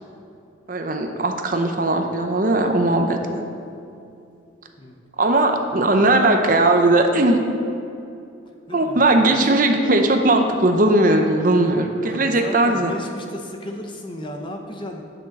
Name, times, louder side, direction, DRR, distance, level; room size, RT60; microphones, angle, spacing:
voice 1, 0.7-3.4 5.2-7.4 8.7-12.9, right 2 dB, 45° right, 5 dB, 0.7 m, -18 dB
voice 2, 8.7-9.4 12.0-15.1, left 1 dB, 25° left, 2 dB, 0.8 m, -34 dB
10.0 x 6.3 x 6.6 m, 2.6 s
head